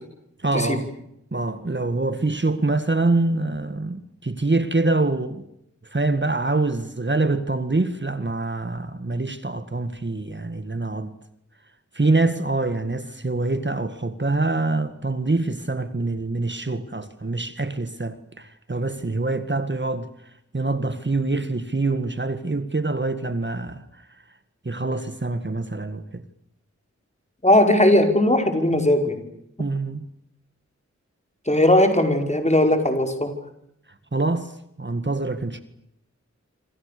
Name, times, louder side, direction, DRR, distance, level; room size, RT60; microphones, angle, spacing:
voice 1, 0.4-0.9 1.3-5.4 5.9-11.1 11.9-20.1 20.5-24.1 24.7-26.2 29.6-30.1 34.1-35.6, right 2 dB, 40° right, 1.9 m, -25 dB
voice 2, 27.4-29.2 31.5-33.3, left 1 dB, 25° left, 5.3 m, -18 dB
27.5 x 26.5 x 6.8 m
wide cardioid pair, 70°, 29 cm